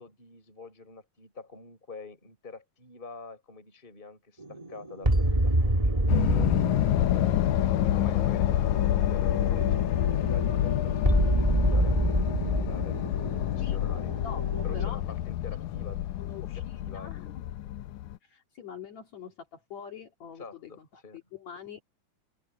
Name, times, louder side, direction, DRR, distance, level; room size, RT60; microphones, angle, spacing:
voice 1, 0.0-6.5 7.0-13.2 13.5-14.1 14.6-16.0 16.4-17.1 20.4-21.2, left 4 dB, 15° left, 4.1 m, -46 dB
sound 1, 4.4-14.9, right 1 dB, 15° right, 1.9 m, -28 dB
sound 2, 6.1-18.2, left 13 dB, 75° left, 2.1 m, -27 dB
voice 2, 14.2-15.0 15.5-15.7 16.2-17.5 18.2-21.0 21.3-21.8, left 7 dB, 60° left, 3.5 m, -44 dB
open air
omnidirectional pair, 3.7 m